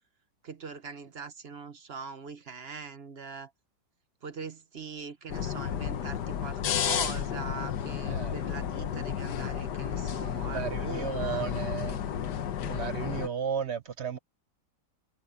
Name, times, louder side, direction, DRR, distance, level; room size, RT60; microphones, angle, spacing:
voice 1, 0.4-3.5 4.2-11.5, right 5 dB, 40° right, 1.0 m, -42 dB
sound 1, 5.3-13.3, left 9 dB, 70° left, 1.6 m, -32 dB
voice 2, 10.5-12.0 12.6-14.2, right 8 dB, 60° right, 0.7 m, -34 dB
omnidirectional pair, 2.0 m